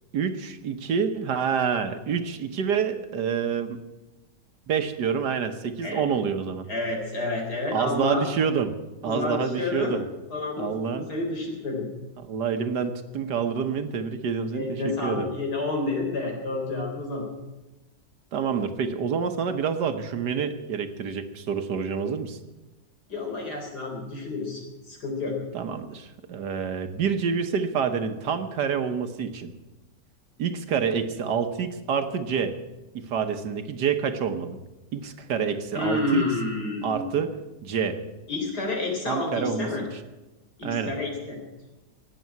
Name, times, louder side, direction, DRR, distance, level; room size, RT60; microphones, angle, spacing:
voice 1, 0.1-3.8 4.7-6.7 7.7-8.7 9.0-10.1 10.6-11.1 12.2-15.3 18.3-22.4 25.5-29.5 30.4-32.5 32.9-34.6 34.9-36.2 36.8-37.3 37.6-38.0 39.1-39.7 40.6-40.9, right 6 dB, 65° right, 8 dB, 1.6 m, -27 dB
voice 2, 6.7-8.2 9.0-10.0 10.3-11.9 14.5-17.2 23.1-25.4 35.7-37.1 38.3-39.8 40.6-41.4, left 2 dB, 60° left, 1 dB, 4.6 m, -29 dB
18.0 x 7.7 x 9.4 m, 1.1 s
omnidirectional pair, 2.0 m